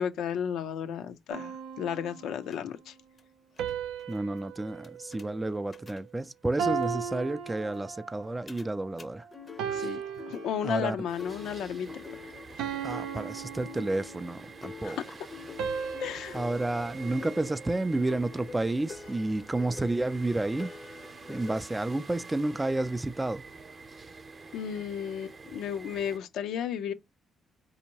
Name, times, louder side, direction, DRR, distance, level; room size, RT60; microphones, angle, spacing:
voice 1, 0.0-2.9 9.7-10.0 10.3-11.9 14.8-15.0 16.0-16.4 24.5-26.9, left 8 dB, 80° left, 0.5 m, -33 dB
sound 1, 1.3-2.6 3.6-6.1 6.6-8.3 8.9-9.1 9.6-11.1 11.6-11.9 12.6-14.5 15.6-18.0, right 7 dB, 90° right, 0.5 m, -37 dB
sound 2, 2.5-2.6 3.2-3.3 3.6-3.7 4.0-4.2 4.8-5.3 5.7-6.0 6.8-6.9 7.1-7.2 7.4-7.6 8.5-8.7 9.0-9.1 9.3-21.6, left 5 dB, 35° left, 0.6 m, -47 dB
voice 2, 4.1-9.2 9.6-9.9 10.6-11.0 12.8-15.0 16.3-20.7 21.3-23.4, right 2 dB, 15° right, 0.3 m, -31 dB
sound 3, 11.1-26.2, right 4 dB, 40° right, 0.7 m, -47 dB
4.3 x 2.7 x 2.8 m
cardioid pair, 90°, 0 cm